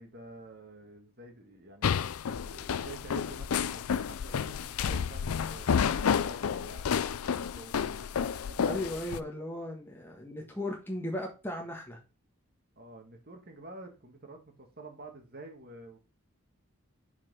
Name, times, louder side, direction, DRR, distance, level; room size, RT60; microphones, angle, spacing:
voice 1, 0.0-1.9 2.4-7.8 8.5-9.0 12.8-16.0, right 2 dB, 45° right, 1.8 m, -49 dB
sound 1, 1.8-9.2, left 7 dB, 90° left, 0.4 m, -30 dB
voice 2, 8.6-12.0, left 1 dB, 10° left, 1.4 m, -37 dB
5.9 x 4.8 x 6.1 m
head